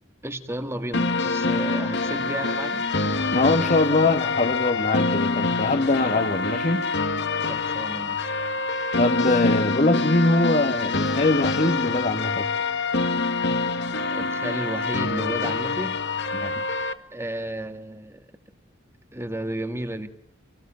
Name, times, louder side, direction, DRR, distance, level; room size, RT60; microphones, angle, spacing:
voice 1, 0.2-2.9 7.5-8.3 14.1-16.0 17.1-18.3 19.1-20.1, right 1 dB, 15° right, 1.8 m, -33 dB
sound 1, 0.9-16.9, left 3 dB, 60° left, 1.8 m, -25 dB
voice 2, 3.3-6.8 9.0-12.5 16.3-16.5, left 2 dB, 40° left, 1.7 m, -22 dB
27.5 x 19.5 x 9.1 m
head